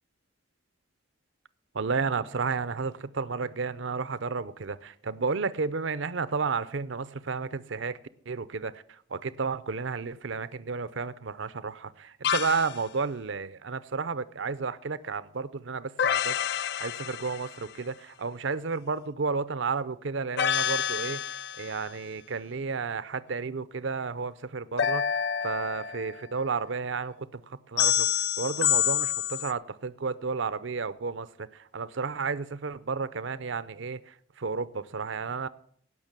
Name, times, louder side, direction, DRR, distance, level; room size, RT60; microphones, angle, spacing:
voice 1, 1.7-8.0 8.3-35.5, right 4 dB, 65° right, 16 dB, 0.6 m, -32 dB
sound 1, 12.2-12.8 16.0-17.7 20.4-21.8 24.8-26.3 27.8-29.5, left 9 dB, 55° left, 0.4 m, -28 dB
17.0 x 6.0 x 7.4 m, 0.63 s
head